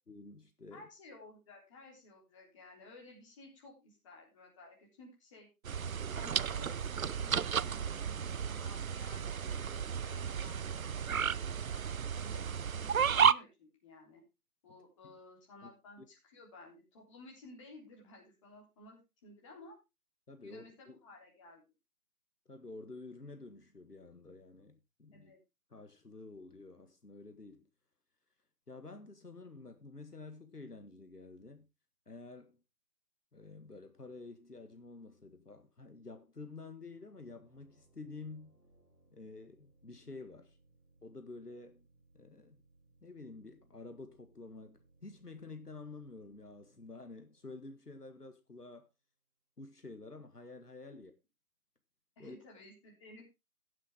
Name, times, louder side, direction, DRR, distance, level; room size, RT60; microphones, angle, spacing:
voice 1, 0.1-0.9 15.0-15.2 15.6-15.7 16.0-16.1 20.3-21.0 22.5-25.3 25.7-27.7 28.7-31.7 32.1-32.6 33.3-38.6 39.1-40.6 41.0-41.9 42.1-42.6 43.0-48.9 49.6-51.1 52.2-52.4, left 3 dB, 80° left, 1.9 m, -50 dB
voice 2, 0.7-5.5 6.1-12.4 12.8-14.2 14.6-19.8 20.4-21.6 25.1-25.4 50.9-51.0 52.2-53.3, left 2 dB, 20° left, 3.5 m, -55 dB
sound 1, 5.6-13.3, right 7 dB, 65° right, 0.5 m, -33 dB
sound 2, 36.9-48.4, right 2 dB, 5° right, 5.0 m, -69 dB
16.0 x 7.5 x 3.6 m
figure-of-eight pair, 150°, 46 cm